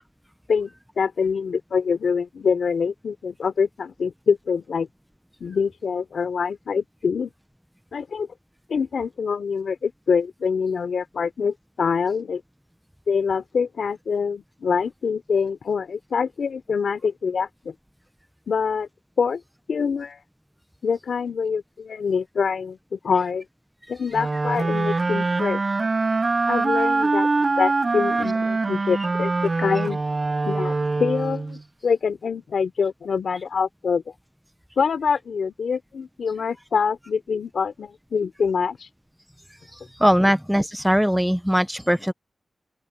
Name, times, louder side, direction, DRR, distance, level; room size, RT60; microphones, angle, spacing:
voice 1, 0.5-4.9 5.4-7.3 7.9-8.3 8.7-12.4 13.1-17.7 18.5-18.9 19.2-19.4 19.7-20.2 20.8-23.5 23.9-25.6 26.5-30.0 30.5-34.0 34.8-38.9, left 6 dB, 85° left, 3.4 m, -25 dB
sound 1, 24.1-31.6, right 3 dB, 40° right, 0.4 m, -23 dB
voice 2, 39.7-42.1, equal, ahead, 0.6 m, -21 dB
open air
wide cardioid pair, 80°, 0 cm